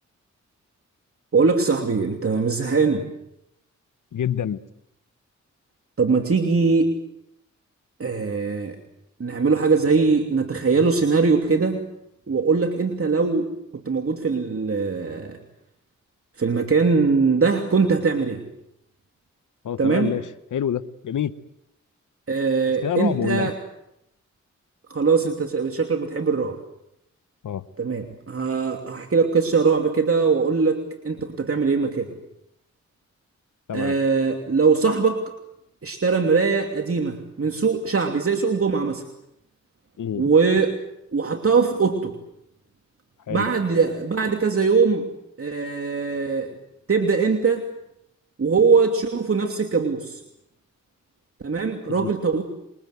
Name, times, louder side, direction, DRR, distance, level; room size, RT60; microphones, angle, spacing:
voice 1, 1.3-3.0 6.0-6.9 8.0-8.8 9.2-11.9 12.3-13.5 13.8-15.4 16.4-18.4 19.8-20.1 22.3-23.6 24.9-26.6 27.8-32.1 33.7-35.3 35.8-39.0 40.1-40.8 41.1-42.2 43.3-45.1 45.4-46.5 46.9-47.7 48.4-50.2 51.4-52.4, right 4 dB, 45° right, 3 dB, 2.9 m, -21 dB
voice 2, 4.1-4.6 19.6-21.3 22.8-23.5 27.4-27.6 33.7-34.0 40.0-40.3 43.3-43.5 52.0-52.1, left 9 dB, 75° left, 14 dB, 1.0 m, -27 dB
27.5 x 23.0 x 8.1 m, 0.81 s
cardioid pair, 65°, 30 cm